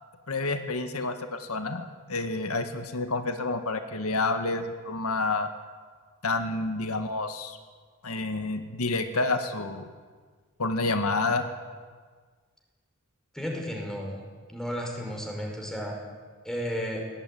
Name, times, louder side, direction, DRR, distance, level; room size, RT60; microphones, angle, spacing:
voice 1, 0.3-5.5 6.2-7.6 8.0-9.9 10.6-11.5, left 3 dB, 85° left, 7 dB, 1.8 m, -29 dB
voice 2, 13.3-14.2 14.5-16.0 16.4-17.0, equal, 5° left, 0 dB, 5.5 m, -33 dB
22.5 x 18.0 x 9.3 m, 1.5 s
head